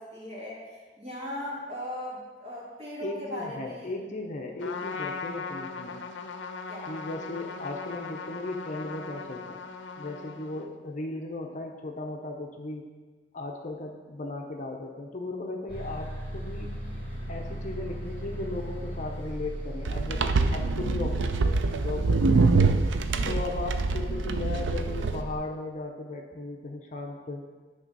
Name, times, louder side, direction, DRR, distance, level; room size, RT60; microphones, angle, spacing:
voice 1, 0.0-3.9 6.7-6.9 23.1-23.4, left 1 dB, 35° right, -5 dB, 2.0 m, -38 dB
voice 2, 3.0-6.0 6.9-9.6 10.0-12.9 13.3-16.7 17.3-22.5 23.2-27.4, left 2 dB, 45° left, 2 dB, 0.7 m, -36 dB
Trumpet, 4.6-10.8, left 4 dB, 85° left, 0.5 m, -39 dB
Bus, 15.7-25.4, equal, 65° right, 2.3 m, -37 dB
sound 1, 19.8-25.2, right 4 dB, 85° right, 0.4 m, -25 dB
8.9 x 3.4 x 5.3 m, 1.3 s
head